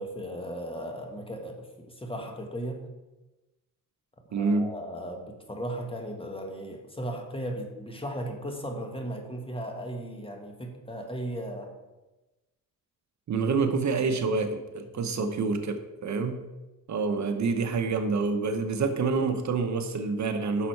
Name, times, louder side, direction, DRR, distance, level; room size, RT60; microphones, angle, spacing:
voice 1, 0.0-2.9 4.3-11.7 14.9-15.5, right 1 dB, 15° left, 3 dB, 1.6 m, -36 dB
voice 2, 4.3-4.7 13.3-16.4 16.9-20.7, right 4 dB, 55° right, 7 dB, 0.9 m, -27 dB
10.0 x 6.4 x 4.6 m, 1.1 s
cardioid pair, 95°, 34 cm